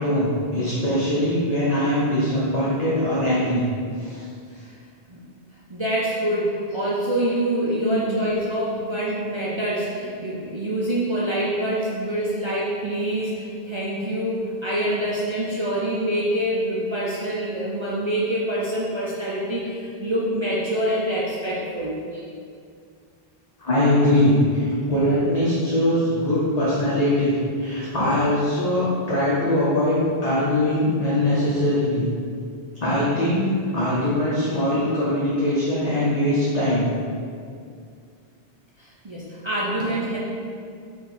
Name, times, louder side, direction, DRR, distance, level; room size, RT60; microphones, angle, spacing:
voice 1, 0.0-3.6 4.0-4.2 7.8-8.2 23.6-32.1 32.8-36.9, left 1 dB, 45° left, -8 dB, 0.8 m, -21 dB
voice 2, 5.7-22.0 38.8-40.2, right 1 dB, 40° right, -7 dB, 0.4 m, -26 dB
4.4 x 2.6 x 4.0 m, 2.3 s
omnidirectional pair, 1.1 m